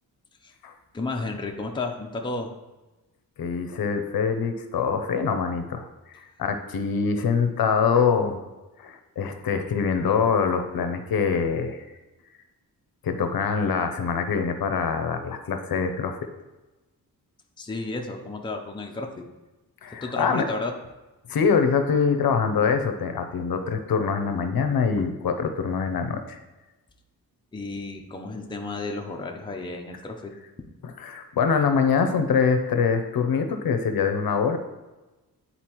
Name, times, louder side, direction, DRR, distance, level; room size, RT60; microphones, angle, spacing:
voice 1, 0.9-2.5 17.6-19.3 19.9-20.7 27.5-30.3, left 3 dB, 15° left, 2 dB, 0.5 m, -32 dB
voice 2, 3.4-8.4 8.8-11.8 13.0-16.2 19.8-20.5 21.3-26.4 31.0-34.6, left 6 dB, 70° left, 7 dB, 0.7 m, -24 dB
9.6 x 4.0 x 3.0 m, 1.1 s
wide cardioid pair, 155°, 37 cm